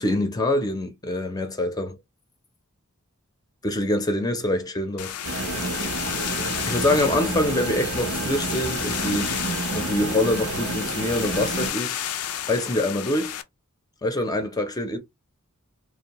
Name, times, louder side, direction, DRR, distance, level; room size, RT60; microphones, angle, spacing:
voice 1, 0.0-2.0 3.6-5.2 6.7-9.3 9.8-12.0 12.5-13.4 14.0-15.0, left 1 dB, 20° left, 0.5 m, -25 dB
sound 1, 5.0-13.4, left 10 dB, 90° left, 0.4 m, -32 dB
sound 2, 5.2-11.7, right 3 dB, 90° right, 0.7 m, -29 dB
2.6 x 2.0 x 2.9 m
head